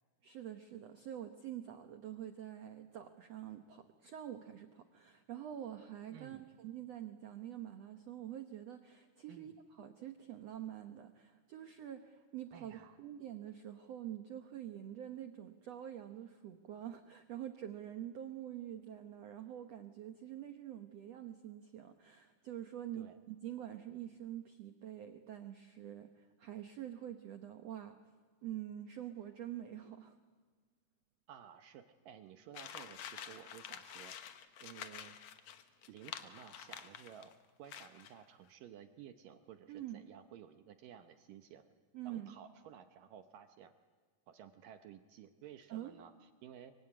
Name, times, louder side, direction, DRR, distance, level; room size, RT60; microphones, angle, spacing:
voice 1, 0.2-28.0 28.4-30.2 39.7-40.0 41.9-42.3 45.7-45.9, right 11 dB, 85° right, 8 dB, 1.4 m, -46 dB
voice 2, 6.1-6.5 9.3-9.6 12.5-13.0 22.9-23.2 31.3-34.2 34.6-35.2 35.9-37.3 37.6-41.7 42.1-43.7 44.3-46.7, right 9 dB, 70° right, 8 dB, 2.3 m, -55 dB
sound 1, 32.5-37.3 37.7-38.2, left 9 dB, 70° left, 1.6 m, -49 dB
24.5 x 24.0 x 9.9 m, 1.5 s
omnidirectional pair, 4.6 m